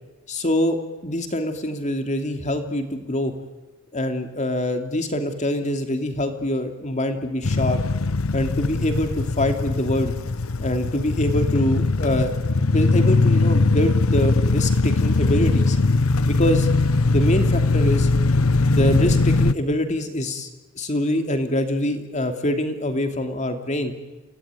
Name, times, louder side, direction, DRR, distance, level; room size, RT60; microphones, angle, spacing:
voice 1, 0.3-0.8 1.0-3.3 3.9-7.8 8.3-10.1 10.6-12.3 12.6-15.8 16.3-16.7 17.0-18.1 18.6-20.5 20.8-23.9, left 1 dB, 35° left, 6 dB, 2.8 m, -24 dB
sound 1, 7.4-19.5, left 3 dB, 85° left, 0.9 m, -20 dB
29.0 x 18.0 x 9.6 m, 1.1 s
head